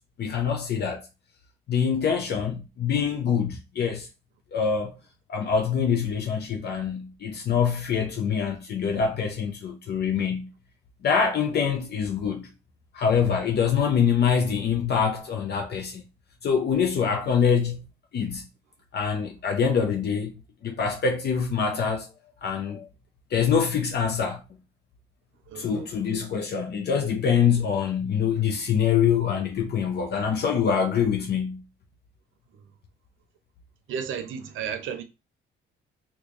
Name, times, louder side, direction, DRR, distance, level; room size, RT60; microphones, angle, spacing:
voice 1, 0.2-1.1 1.7-4.1 4.5-4.9 5.3-10.5 11.0-12.5 12.9-16.0 16.4-17.8 18.1-18.5 18.9-20.3 20.6-22.1 22.4-22.9 23.3-24.4 25.6-31.6, left 7 dB, 55° left, 0.6 m, -25 dB
voice 2, 25.5-25.9 33.9-35.0, right 7 dB, 80° right, 0.6 m, -33 dB
3.0 x 2.3 x 3.8 m
cardioid pair, 90°, 20 cm